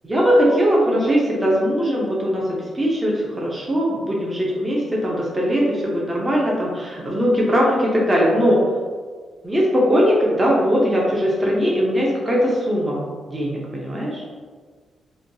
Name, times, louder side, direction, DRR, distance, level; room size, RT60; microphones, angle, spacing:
voice 1, 0.0-8.6 9.4-13.0 13.3-14.2, equal, 20° right, -4 dB, 0.5 m, -20 dB
3.0 x 2.2 x 2.6 m, 1.5 s
cardioid pair, 120°, 0 cm